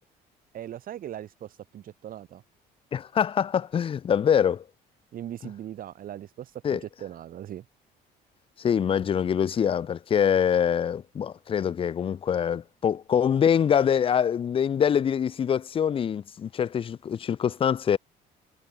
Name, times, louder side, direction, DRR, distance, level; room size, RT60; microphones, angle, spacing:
voice 1, 0.5-2.4 5.1-7.7, right 11 dB, 55° right, 1.9 m, -39 dB
voice 2, 2.9-4.6 6.6-6.8 8.6-18.0, left 8 dB, 35° left, 0.5 m, -24 dB
cardioid pair, 110°, 17 cm